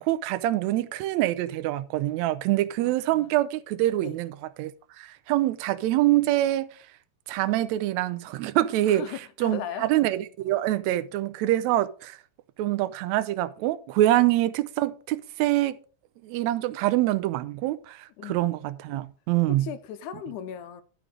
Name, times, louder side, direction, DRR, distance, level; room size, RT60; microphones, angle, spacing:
voice 1, 0.0-4.7 5.0-6.7 7.3-9.0 9.4-12.2 12.6-15.8 16.2-19.7, right 15 dB, 80° right, 1.6 m, -25 dB
voice 2, 2.8-3.3 4.0-4.2 8.9-9.9 18.2-18.4 19.6-20.8, left 9 dB, 80° left, 2.1 m, -37 dB
12.0 x 4.9 x 5.0 m
omnidirectional pair, 3.8 m